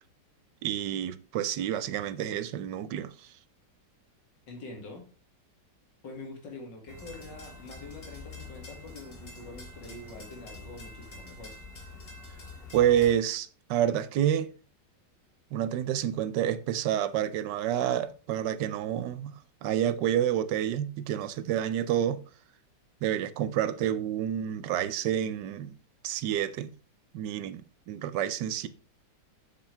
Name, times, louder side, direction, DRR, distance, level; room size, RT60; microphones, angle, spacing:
voice 1, 0.6-3.3 12.7-14.5 15.5-22.2 23.0-25.7 26.0-26.7 27.1-28.7, right 10 dB, 80° right, 1.3 m, -29 dB
voice 2, 4.5-5.0 6.0-11.6, left 2 dB, 90° left, 2.9 m, -45 dB
sound 1, 6.9-13.2, left 3 dB, 35° left, 1.8 m, -46 dB
7.4 x 6.9 x 3.3 m
omnidirectional pair, 1.9 m